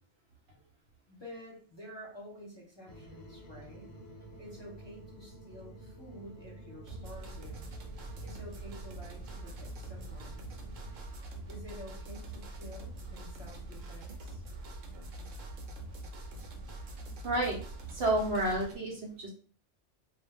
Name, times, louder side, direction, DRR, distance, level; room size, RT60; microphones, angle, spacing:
voice 1, 1.1-3.9 4.4-7.7 8.2-10.5 11.5-14.4, equal, 25° left, -6 dB, 0.7 m, -49 dB
sound 1, 2.9-11.0, right 1 dB, 70° left, 0.9 m, -51 dB
sound 2, 6.9-18.8, right 2 dB, 85° right, 1.0 m, -44 dB
voice 2, 17.0-17.6 17.9-19.3, right 1 dB, 65° right, -1 dB, 0.8 m, -31 dB
2.4 x 2.0 x 3.3 m, 0.42 s
omnidirectional pair, 1.3 m